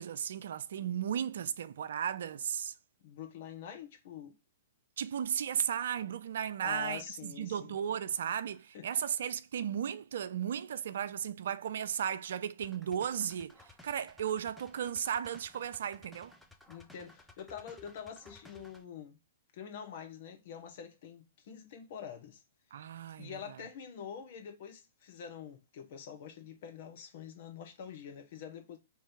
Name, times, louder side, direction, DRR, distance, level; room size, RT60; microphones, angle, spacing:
voice 1, 0.0-2.7 5.0-13.6 13.8-16.3 22.7-23.4, right 9 dB, 65° right, 0.4 m, -35 dB
voice 2, 3.0-4.3 6.6-7.8 8.7-9.0 16.7-19.2 19.5-22.4 23.2-28.8, left 8 dB, 55° left, 1.3 m, -46 dB
sound 1, 12.6-18.8, left 2 dB, ahead, 0.7 m, -57 dB
3.7 x 3.1 x 4.5 m
figure-of-eight pair, 115°, 0 cm